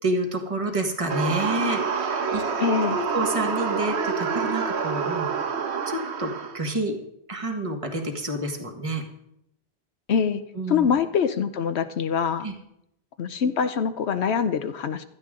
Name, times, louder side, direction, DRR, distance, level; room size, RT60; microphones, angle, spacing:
voice 1, 0.0-2.4 2.9-5.5 5.9-7.0 7.3-9.0 10.5-10.9 12.4-12.5, right 1 dB, 30° right, 3 dB, 1.8 m, -29 dB
sound 1, 1.1-6.6, right 5 dB, 85° right, 1.3 m, -27 dB
voice 2, 2.6-3.0 10.1-10.4 10.7-12.5 13.2-15.0, left 7 dB, 80° left, 10 dB, 1.0 m, -24 dB
16.0 x 13.0 x 3.8 m, 0.79 s
omnidirectional pair, 1.1 m